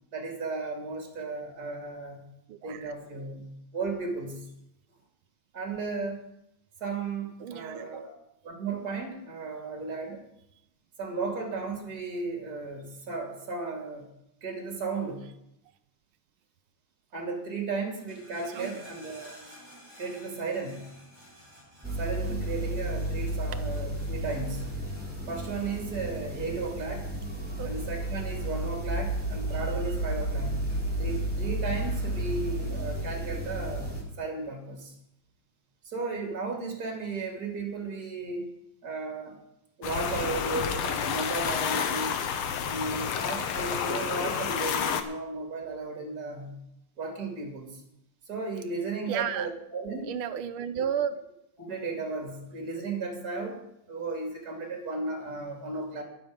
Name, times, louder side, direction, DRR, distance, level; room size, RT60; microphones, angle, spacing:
voice 1, 0.1-2.2 2.6-4.5 5.5-6.2 6.8-8.1 8.4-10.2 11.0-14.1 14.4-15.3 17.1-19.4 20.0-21.0 22.0-24.7 25.3-27.1 27.6-30.7 31.0-33.9 34.2-34.9 35.8-38.5 38.8-39.4 39.8-42.2 42.6-46.7 47.0-47.8 48.3-50.1 51.6-56.0, right 3 dB, 45° right, 2 dB, 3.1 m, -35 dB
voice 2, 2.5-2.9 7.4-8.0 18.4-18.8 27.6-27.7 49.1-49.5 50.0-51.2, right 8 dB, 80° right, 11 dB, 1.7 m, -33 dB
sound 1, 17.9-29.2 29.5-30.0 30.3-32.3 32.6-33.4 34.1-34.2, equal, 10° left, 5.4 m, -54 dB
sound 2, 21.8-34.0, right 1 dB, 5° right, 3.0 m, -32 dB
sound 3, 39.8-45.0, left 7 dB, 80° left, 1.9 m, -30 dB
21.0 x 7.1 x 5.1 m, 0.81 s
omnidirectional pair, 2.3 m